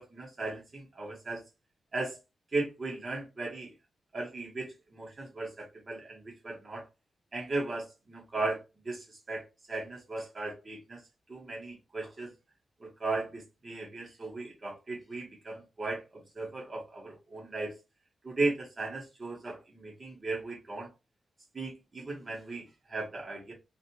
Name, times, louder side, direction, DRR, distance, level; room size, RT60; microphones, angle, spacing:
voice 1, 0.0-1.4 1.9-2.2 2.5-3.7 4.1-6.8 7.3-11.0 11.3-12.3 12.8-17.7 18.2-20.9 21.5-23.5, right 2 dB, 30° right, 1.1 m, -37 dB
2.7 x 2.4 x 2.8 m
wide cardioid pair, 165°, 0 cm